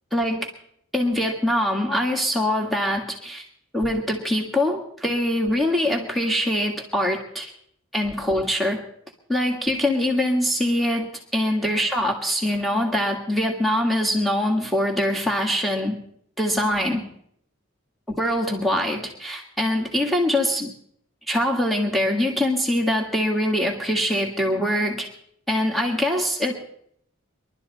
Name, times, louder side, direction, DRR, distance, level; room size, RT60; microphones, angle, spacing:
voice 1, 0.1-0.5 0.9-3.4 3.7-7.5 7.9-8.8 9.3-16.0 16.4-17.0 18.2-20.7 21.3-25.1 25.5-26.5, left 1 dB, ahead, -1 dB, 1.7 m, -23 dB
22.5 x 12.0 x 4.1 m, 0.68 s
head